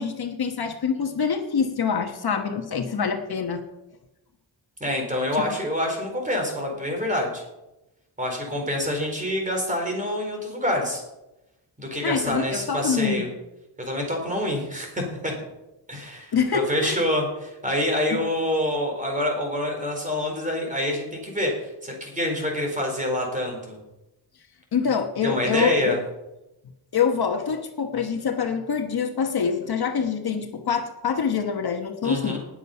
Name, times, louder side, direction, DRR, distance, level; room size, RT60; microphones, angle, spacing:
voice 1, 0.0-3.6 5.4-5.5 12.0-13.3 16.3-17.0 18.1-18.2 24.7-25.9 26.9-32.4, left 6 dB, 55° left, 5 dB, 1.2 m, -25 dB
voice 2, 4.8-7.4 8.2-11.0 11.8-13.3 13.8-15.3 15.9-23.8 25.2-26.0 32.0-32.4, left 1 dB, 15° right, 1 dB, 4.1 m, -26 dB
19.5 x 7.4 x 5.6 m, 0.96 s
wide cardioid pair, 155°, 45 cm